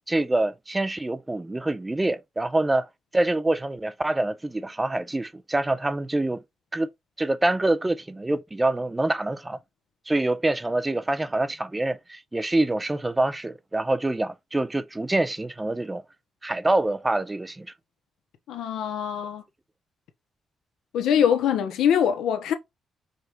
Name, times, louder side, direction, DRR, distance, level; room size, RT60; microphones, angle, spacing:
voice 1, 0.1-2.9 3.1-6.4 6.7-6.9 7.2-9.6 10.1-16.0 16.4-17.7, right 2 dB, 15° right, 0.4 m, -25 dB
voice 2, 18.5-19.4 20.9-22.5, left 8 dB, 85° left, 0.9 m, -23 dB
4.9 x 2.4 x 4.4 m
cardioid pair, 115°, 0 cm